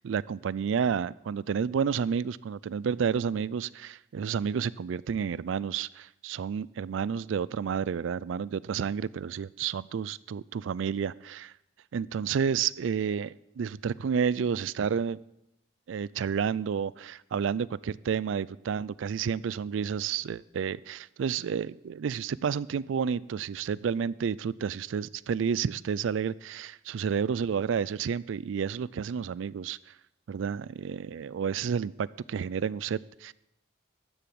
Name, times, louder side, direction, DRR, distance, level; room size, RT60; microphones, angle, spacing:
voice 1, 0.0-11.5 11.9-15.2 15.9-29.8 30.3-33.3, right 7 dB, 85° right, 21 dB, 0.4 m, -30 dB
13.0 x 6.9 x 7.8 m, 0.86 s
head